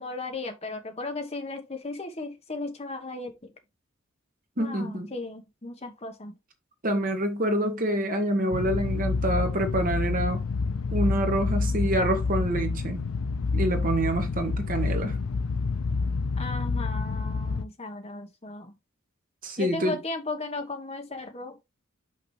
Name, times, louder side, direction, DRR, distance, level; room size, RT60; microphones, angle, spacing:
voice 1, 0.0-3.5 4.6-6.3 16.4-18.7 19.6-21.6, left 3 dB, 30° left, 1.2 m, -36 dB
voice 2, 4.6-5.1 6.8-10.4 10.9-13.0 13.5-15.2 19.4-20.0, right 1 dB, 40° right, 1.6 m, -27 dB
sound 1, 8.5-17.6, left 4 dB, 80° left, 0.5 m, -28 dB
5.9 x 5.9 x 3.2 m
head